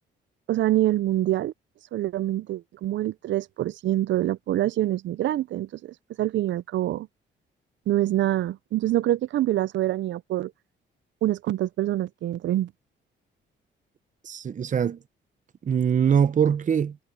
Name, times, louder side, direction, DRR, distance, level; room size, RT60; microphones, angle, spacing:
voice 1, 0.5-1.5 1.9-7.1 7.9-10.5 11.2-12.7, right 14 dB, 70° right, 0.6 m, -25 dB
voice 2, 14.2-15.0 15.6-17.0, right 7 dB, 40° right, 0.8 m, -22 dB
cardioid pair, 90°, 20 cm